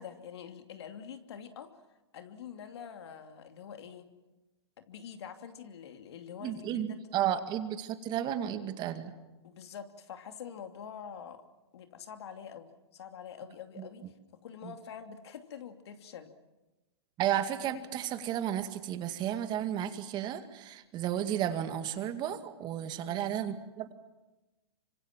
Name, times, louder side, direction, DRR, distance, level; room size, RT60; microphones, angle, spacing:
voice 1, 0.0-1.7 2.1-4.1 4.8-7.0 9.4-11.4 11.7-14.1 14.4-16.3 23.1-23.3, left 8 dB, 70° left, 7 dB, 2.7 m, -46 dB
voice 2, 6.4-9.1 13.8-13.9 14.6-14.7 17.2-23.9, right 10 dB, 30° right, 9 dB, 2.1 m, -33 dB
26.0 x 25.5 x 7.4 m, 1.1 s
hypercardioid pair, 125°, 14 cm